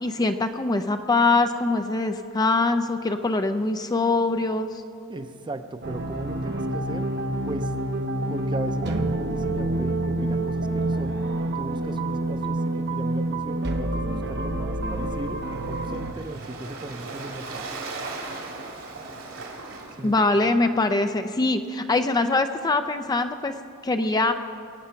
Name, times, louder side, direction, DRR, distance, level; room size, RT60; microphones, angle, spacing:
voice 1, 0.0-4.8 20.0-23.5 23.8-24.3, left 3 dB, 20° left, 8 dB, 0.4 m, -23 dB
voice 2, 5.1-7.1 7.5-7.7 8.3-11.2 11.5-17.7 20.0-20.2, right 2 dB, 20° right, 9 dB, 0.6 m, -37 dB
sound 1, 5.8-16.1, right 1 dB, 55° right, 0.8 m, -27 dB
Waves surf, 14.7-20.4, right 3 dB, 75° right, 2.8 m, -38 dB
22.0 x 8.6 x 5.7 m, 2.5 s
head